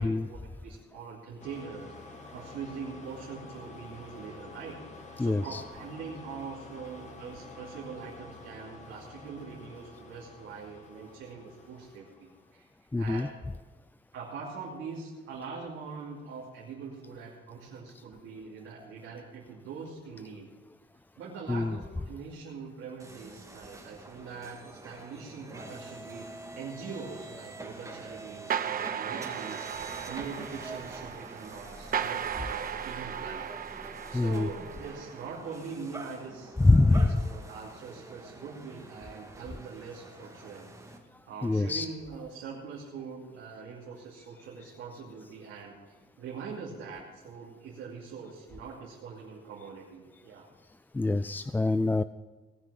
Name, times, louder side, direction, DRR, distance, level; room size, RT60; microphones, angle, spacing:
voice 1, 0.0-4.8 5.1-12.7 13.0-13.3 14.1-20.5 21.2-26.3 26.5-33.7 34.1-40.7 41.3-45.8 46.2-50.5, right 5 dB, 85° right, -5 dB, 2.7 m, -43 dB
sound 1, 1.4-12.6, left 3 dB, 35° left, 2.1 m, -49 dB
voice 2, 5.2-5.6 12.9-13.3 21.5-21.8 34.1-34.5 36.6-37.2 41.4-41.9 50.9-52.0, left 2 dB, 10° left, 13 dB, 0.3 m, -24 dB
sound 2, 23.0-41.0, right 2 dB, 15° right, 2.3 m, -46 dB
sound 3, 28.5-35.4, right 8 dB, 45° right, 0.8 m, -36 dB
18.5 x 6.3 x 7.6 m, 1.2 s
cardioid pair, 90°, 20 cm